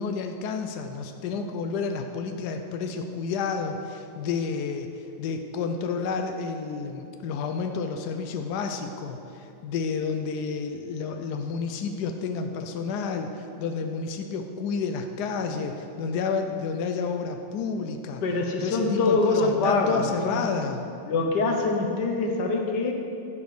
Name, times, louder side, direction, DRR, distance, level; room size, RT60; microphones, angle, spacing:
voice 1, 0.0-18.2 18.6-20.9, left 5 dB, 75° left, 5 dB, 0.9 m, -30 dB
voice 2, 18.2-20.4 21.1-22.9, left 3 dB, 60° left, 2 dB, 1.5 m, -24 dB
12.0 x 5.1 x 6.6 m, 2.7 s
omnidirectional pair, 2.3 m